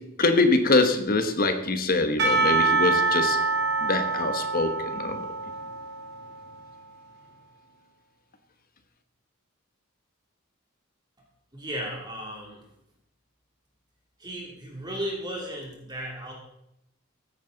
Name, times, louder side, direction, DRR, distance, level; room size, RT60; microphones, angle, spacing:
voice 1, 0.2-3.4 3.8-5.2, left 3 dB, 45° left, 8 dB, 1.2 m, -24 dB
Percussion / Church bell, 2.2-6.6, right 3 dB, 50° right, 1.9 m, -26 dB
voice 2, 11.5-12.7 14.2-16.3, equal, 20° right, -1 dB, 2.9 m, -35 dB
15.5 x 9.0 x 4.0 m, 0.81 s
head